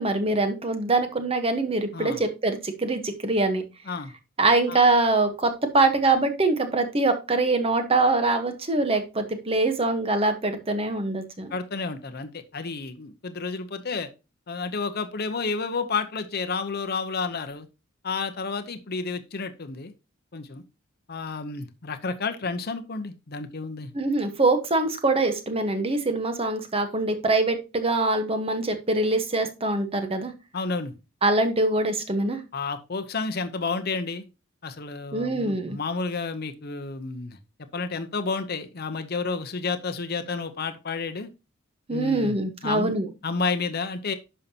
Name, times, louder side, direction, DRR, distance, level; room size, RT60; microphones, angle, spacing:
voice 1, 0.0-3.6 4.4-11.5 23.9-30.3 31.2-32.4 35.1-35.8 41.9-43.1, right 2 dB, 30° right, 7 dB, 1.1 m, -24 dB
voice 2, 11.5-14.1 14.5-17.7 18.0-19.9 20.3-20.6 21.1-23.9 30.5-30.9 32.5-34.3 34.6-37.4 37.7-41.3 41.9-42.4 42.6-42.9 43.2-44.1, left 4 dB, 50° left, 8 dB, 0.8 m, -31 dB
10.5 x 5.6 x 2.8 m, 0.28 s
head